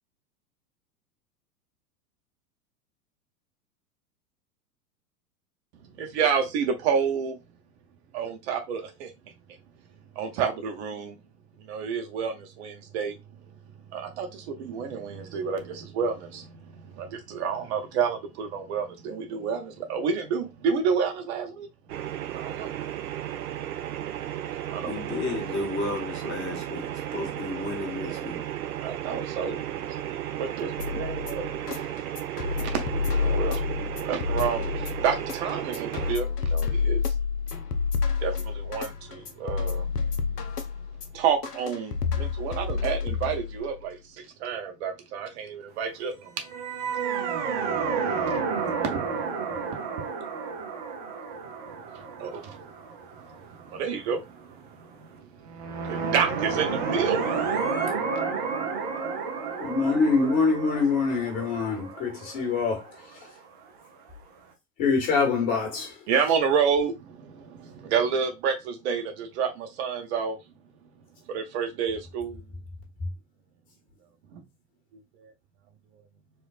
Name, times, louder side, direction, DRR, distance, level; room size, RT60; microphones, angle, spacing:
voice 1, 6.0-7.4 8.1-9.1 10.2-11.2 11.7-13.1 13.9-21.7 22.3-22.7 24.7-24.9 28.8-29.6 30.4-31.8 32.6-32.8 33.2-33.6 34.1-37.0 38.2-40.3 41.1-46.5 48.8-49.1 52.2-52.6 53.7-54.2 55.8-57.2 66.1-70.4 71.3-72.4 74.3-74.4 75.2-75.3, right 6 dB, 45° right, 0.8 m, -29 dB
sound 1, 21.9-36.1, right 11 dB, 70° right, 0.5 m, -34 dB
voice 2, 24.8-28.4, left 3 dB, 25° left, 1.1 m, -33 dB
sound 2, 30.8-43.8, left 5 dB, 80° left, 0.7 m, -29 dB
sound 3, 46.4-53.6 55.5-63.3, right 5 dB, 15° right, 0.3 m, -31 dB
voice 3, 59.6-63.3 64.8-66.1, left 4 dB, 40° left, 1.7 m, -25 dB
4.3 x 2.2 x 2.4 m
figure-of-eight pair, 95°, 47 cm